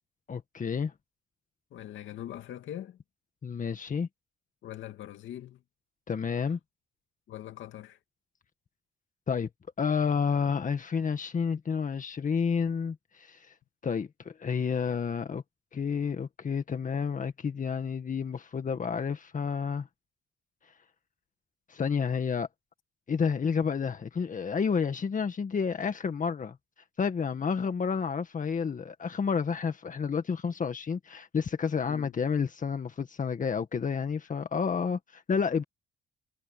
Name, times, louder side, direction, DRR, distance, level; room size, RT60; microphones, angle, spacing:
voice 1, 0.3-0.9 3.4-4.1 6.1-6.6 9.3-9.5 9.8-13.5 13.8-15.4 15.7-19.9 21.7-22.5 23.1-26.6 27.0-35.6, left 6 dB, 40° left, 1.8 m, -30 dB
voice 2, 1.7-3.0 4.6-5.6 7.3-8.0 31.9-32.1, left 12 dB, 75° left, 2.5 m, -42 dB
cardioid pair, 90°, 20 cm